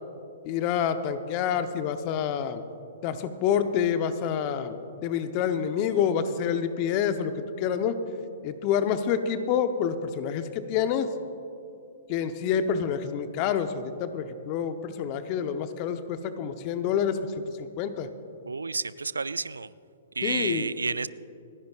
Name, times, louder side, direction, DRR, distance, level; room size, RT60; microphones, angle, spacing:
voice 1, 0.4-2.6 3.0-8.0 8.4-11.1 12.1-17.2 17.6-18.1 20.2-20.7, left 8 dB, 40° left, 10 dB, 0.8 m, -27 dB
voice 2, 18.5-19.7 20.2-21.1, right 4 dB, 85° right, 18 dB, 0.3 m, -30 dB
29.0 x 10.5 x 2.4 m, 2.7 s
figure-of-eight pair, 115°, 0 cm